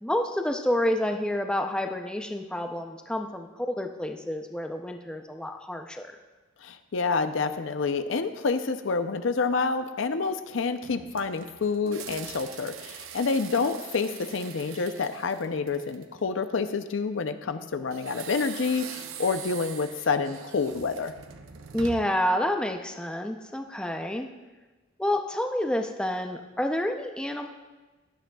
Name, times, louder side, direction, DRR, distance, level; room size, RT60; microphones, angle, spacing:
voice 1, 0.0-6.1 21.7-24.3 25.0-27.5, left 1 dB, 5° left, 4 dB, 0.5 m, -29 dB
voice 2, 6.6-21.1, left 4 dB, 70° left, 9 dB, 0.6 m, -28 dB
sound 1, 10.8-16.2 17.9-22.3, right 7 dB, 90° right, 0.8 m, -43 dB
16.0 x 11.5 x 2.3 m, 1.2 s
head